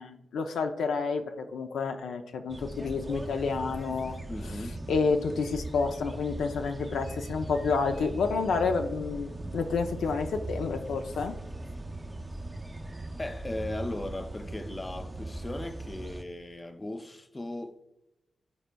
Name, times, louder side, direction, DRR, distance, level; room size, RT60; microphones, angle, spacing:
voice 1, 0.0-4.2 4.9-11.4, left 4 dB, 90° left, 0.5 m, -29 dB
sound 1, 2.5-16.2, right 2 dB, 25° right, 0.6 m, -39 dB
voice 2, 4.3-4.8 13.2-17.8, left 1 dB, 25° left, 0.6 m, -37 dB
12.5 x 4.4 x 2.2 m
cardioid pair, 55°, 0 cm